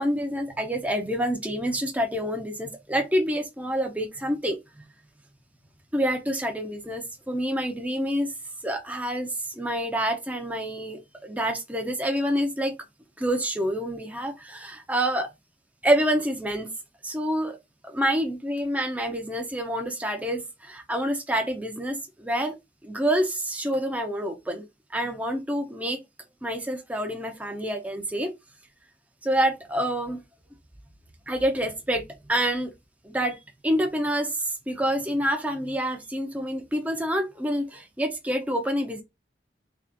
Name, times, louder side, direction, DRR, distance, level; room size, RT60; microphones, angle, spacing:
voice 1, 0.0-4.6 5.9-8.3 8.6-12.7 13.2-15.3 15.8-16.7 17.0-17.6 17.8-22.5 22.8-24.6 24.9-26.0 26.4-28.3 29.2-30.2 31.3-32.0 32.3-32.7 33.0-33.4 33.6-39.0, equal, 10° right, 0.6 m, -27 dB
3.5 x 3.0 x 2.9 m
head